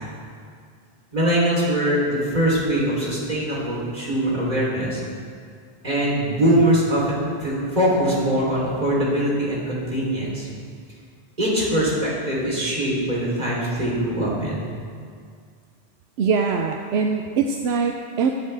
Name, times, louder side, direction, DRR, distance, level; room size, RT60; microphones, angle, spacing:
voice 1, 1.1-5.0 5.8-10.5 11.4-14.7, right 1 dB, 40° right, -6 dB, 3.6 m, -22 dB
voice 2, 16.2-18.3, right 5 dB, 80° right, 4 dB, 0.9 m, -22 dB
20.5 x 8.0 x 3.4 m, 2.2 s
omnidirectional pair, 1.1 m